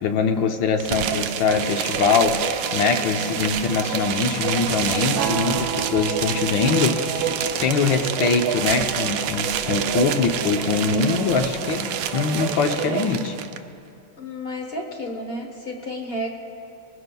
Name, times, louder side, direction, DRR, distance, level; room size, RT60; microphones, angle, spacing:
voice 1, 0.0-7.2 7.6-13.3, left 5 dB, 70° left, 5 dB, 1.4 m, -23 dB
sound 1, 0.8-13.6, right 9 dB, 75° right, 1.2 m, -29 dB
sound 2, 1.1-13.1, right 6 dB, 55° right, 1.4 m, -31 dB
sound 3, 5.1-11.2, right 9 dB, 90° right, 1.5 m, -34 dB
voice 2, 14.2-16.3, equal, 50° left, 3 dB, 0.7 m, -31 dB
21.5 x 16.0 x 2.3 m, 2.6 s
omnidirectional pair, 2.4 m